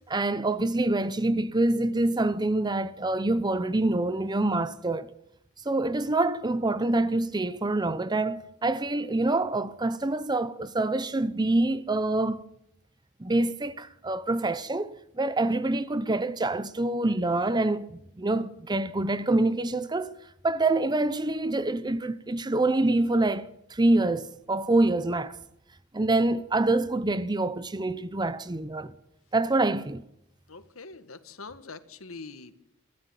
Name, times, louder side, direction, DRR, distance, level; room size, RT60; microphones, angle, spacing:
voice 1, 0.1-5.1 5.6-12.4 13.2-20.1 20.4-25.4 25.9-28.9 29.3-30.0, right 2 dB, 20° right, 0.7 m, -26 dB
voice 2, 30.5-32.5, left 4 dB, 85° left, 1.7 m, -44 dB
24.5 x 14.0 x 9.2 m
head